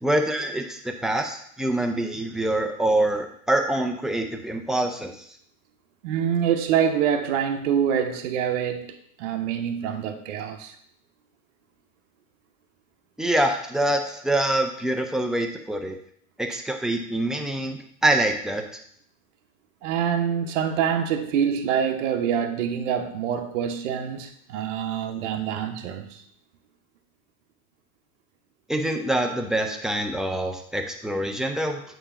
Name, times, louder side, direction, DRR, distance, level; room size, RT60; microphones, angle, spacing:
voice 1, 0.0-5.2 13.2-16.0 16.4-18.6 28.7-31.8, right 1 dB, ahead, 0.6 m, -25 dB
voice 2, 6.0-10.8 19.8-26.2, right 8 dB, 60° right, 0.9 m, -25 dB
8.7 x 3.1 x 4.2 m
figure-of-eight pair, 85°, 42 cm